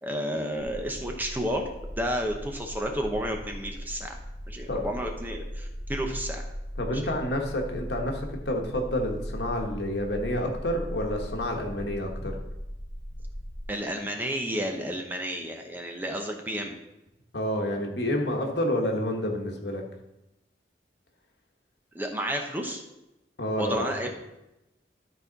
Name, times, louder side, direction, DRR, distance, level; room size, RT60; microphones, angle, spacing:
voice 1, 0.0-1.7 2.0-4.2 4.5-6.4 13.7-16.8 21.9-22.8 23.6-24.1, equal, 10° right, 2 dB, 0.7 m, -31 dB
sound 1, 0.6-13.6, equal, 70° right, 2.4 m, -38 dB
voice 2, 6.8-12.4 17.3-19.8 23.4-24.1, left 1 dB, 75° left, 2 dB, 1.3 m, -29 dB
12.5 x 4.2 x 4.0 m, 0.92 s
head